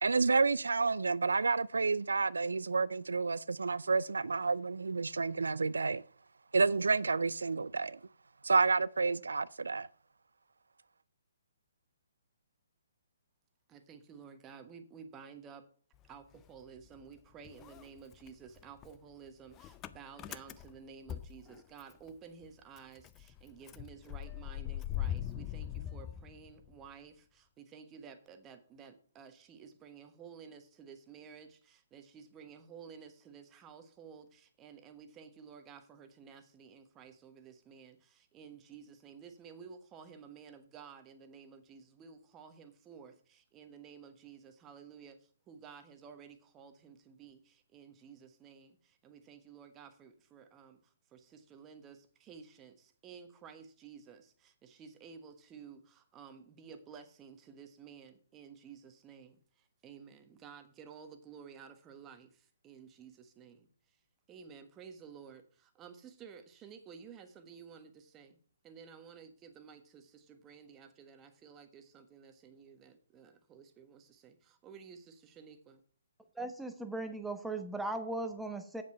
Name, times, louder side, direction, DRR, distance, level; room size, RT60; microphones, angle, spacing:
voice 1, 0.0-6.0 6.5-8.0 8.4-9.9, right 4 dB, 80° right, 0.3 m, -30 dB
voice 2, 13.7-15.7 16.1-64.0 64.3-68.4 68.6-75.8, right 6 dB, 20° right, 1.3 m, -53 dB
Motor vehicle (road) / Engine starting, 15.9-17.2 17.4-22.1 22.4-22.5 22.8-26.9, left 12 dB, 20° left, 0.5 m, -42 dB
voice 3, 76.3-78.8, right 2 dB, 5° right, 1.1 m, -38 dB
8.2 x 7.4 x 5.6 m
figure-of-eight pair, 135°, 0 cm